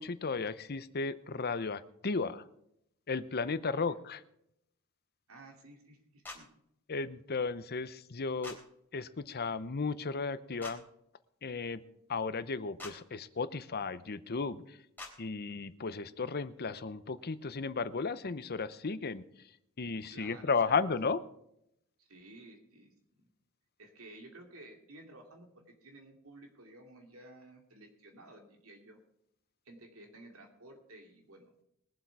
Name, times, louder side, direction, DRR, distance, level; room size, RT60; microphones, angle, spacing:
voice 1, 0.0-2.4 3.1-4.2 6.9-8.6 8.9-10.8 11.4-11.8 12.1-14.8 15.2-19.2 19.8-21.2, left 4 dB, 50° left, 14 dB, 0.7 m, -34 dB
voice 2, 3.7-4.0 5.3-6.5 20.1-20.8 22.0-22.9 23.8-29.0 29.6-31.5, right 2 dB, 75° right, 3 dB, 2.7 m, -54 dB
sound 1, 6.2-6.4 8.4-8.6 10.6-10.8 12.8-12.9 15.0-15.1, left 2 dB, 10° left, 3.2 m, -44 dB
22.0 x 7.8 x 4.7 m, 0.76 s
head